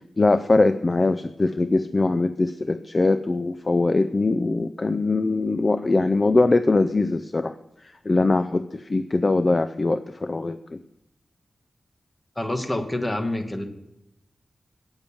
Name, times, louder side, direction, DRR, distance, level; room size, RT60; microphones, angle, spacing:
voice 1, 0.2-7.5 8.1-10.8, left 2 dB, 35° left, 11 dB, 0.4 m, -22 dB
voice 2, 12.4-13.6, left 1 dB, 15° left, 5 dB, 1.3 m, -27 dB
9.1 x 8.9 x 7.1 m, 0.87 s
wide cardioid pair, 120°, 0 cm